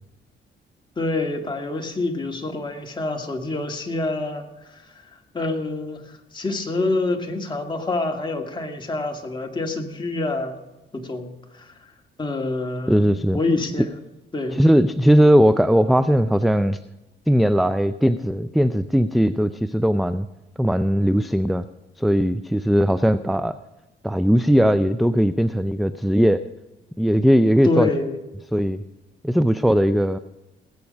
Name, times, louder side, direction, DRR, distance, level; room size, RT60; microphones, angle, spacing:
voice 1, 1.0-4.8 5.3-10.6 10.9-11.7 12.2-13.9 14.3-14.6 27.6-28.2, left 2 dB, 25° left, 3 dB, 2.0 m, -27 dB
voice 2, 12.9-13.4 14.5-16.8 17.3-20.3 20.6-21.6 22.0-23.6 24.0-26.4 27.0-27.9 28.5-28.8 29.2-30.2, equal, ahead, 12 dB, 0.4 m, -18 dB
19.0 x 8.3 x 5.3 m, 0.99 s
cardioid pair, 90°, 20 cm